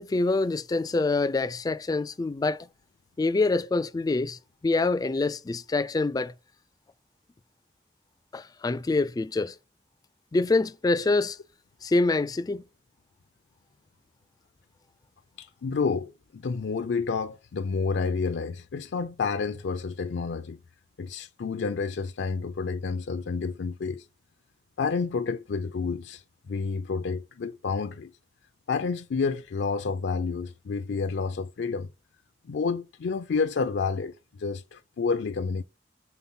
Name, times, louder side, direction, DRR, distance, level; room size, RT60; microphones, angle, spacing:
voice 1, 0.0-2.7 3.2-6.3 8.3-9.5 10.3-11.4 11.8-12.6, left 3 dB, 20° left, 0.3 m, -26 dB
voice 2, 15.4-20.6 21.0-24.0 24.8-28.1 28.7-31.9 32.5-35.6, left 4 dB, 85° left, 0.4 m, -29 dB
5.6 x 3.8 x 5.5 m
head